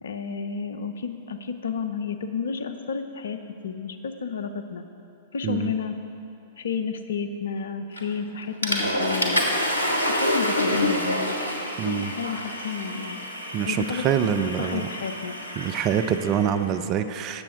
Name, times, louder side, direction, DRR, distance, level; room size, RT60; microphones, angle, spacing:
voice 1, 0.0-4.9 5.3-5.9 6.6-9.4 9.9-11.4 11.8-13.3 13.7-14.3 14.6-15.4, left 6 dB, 70° left, 9 dB, 0.7 m, -31 dB
Water / Toilet flush, 8.0-8.2 8.6-16.5, left 1 dB, 90° left, 1.3 m, -27 dB
voice 2, 11.8-12.1 13.5-14.9 15.6-17.4, right 8 dB, 35° right, 10 dB, 0.6 m, -25 dB
17.0 x 7.3 x 4.5 m, 2.9 s
figure-of-eight pair, 105°, 0 cm